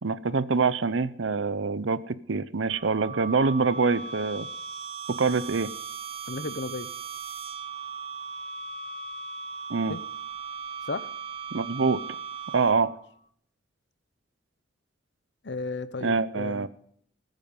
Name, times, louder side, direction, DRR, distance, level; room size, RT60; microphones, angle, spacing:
voice 1, 0.0-4.5 5.1-5.7 9.7-9.9 11.5-12.0 12.5-12.9 16.0-16.7, right 4 dB, 70° right, 16 dB, 0.7 m, -25 dB
sound 1, 2.7-13.1, right 5 dB, 30° right, 0.6 m, -38 dB
voice 2, 6.3-6.9 9.9-10.0 10.9-11.1 15.4-16.7, left 3 dB, 60° left, 14 dB, 0.8 m, -34 dB
20.5 x 9.2 x 5.4 m, 0.65 s
head